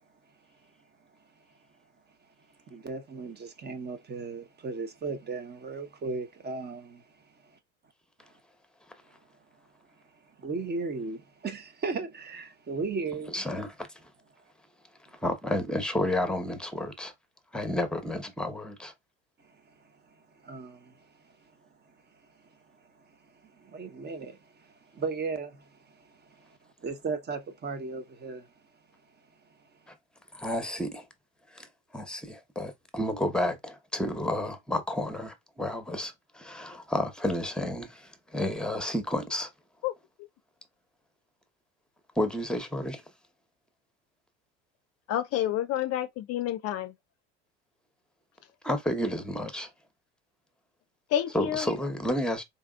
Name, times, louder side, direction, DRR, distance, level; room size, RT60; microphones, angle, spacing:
voice 1, 2.7-7.5 10.4-13.4 19.4-21.5 22.3-22.6 22.9-28.5, right 4 dB, 30° right, 1.1 m, -37 dB
voice 2, 13.3-14.1 15.1-17.1 17.5-18.9 29.9-30.0 30.3-31.1 31.5-31.7 31.9-39.5 42.1-43.0 48.6-49.7 51.3-52.4, left 1 dB, ahead, 1.1 m, -31 dB
voice 3, 45.1-46.9 51.1-51.7, left 11 dB, 45° left, 0.6 m, -29 dB
4.1 x 3.4 x 2.4 m
hypercardioid pair, 80°, 35 cm